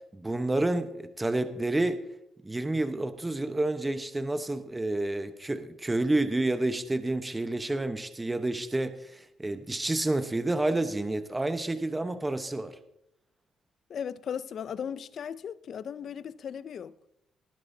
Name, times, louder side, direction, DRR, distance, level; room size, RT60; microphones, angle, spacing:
voice 1, 0.1-2.0 2.4-12.7, right 2 dB, 15° right, 1.0 m, -29 dB
voice 2, 13.9-16.9, left 8 dB, 60° left, 0.5 m, -37 dB
19.0 x 10.5 x 2.7 m
cardioid pair, 90°, 0 cm